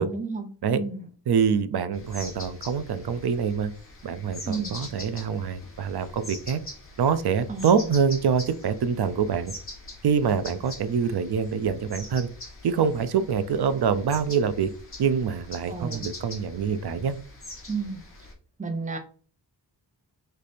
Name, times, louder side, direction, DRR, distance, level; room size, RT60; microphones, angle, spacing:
voice 1, 0.0-0.5 0.7-1.1 4.4-4.8 7.5-7.9 15.7-16.0 17.7-18.0 18.6-19.0, right 4 dB, 20° right, 4 dB, 0.6 m, -32 dB
voice 2, 1.3-3.7 4.0-6.6 7.0-9.5 10.0-12.3 12.6-14.7 15.0-17.2, right 6 dB, 65° right, 13 dB, 0.5 m, -25 dB
sound 1, 1.9-18.3, left 2 dB, 30° left, 1.2 m, -43 dB
3.3 x 3.2 x 4.1 m, 0.41 s
wide cardioid pair, 135°, 42 cm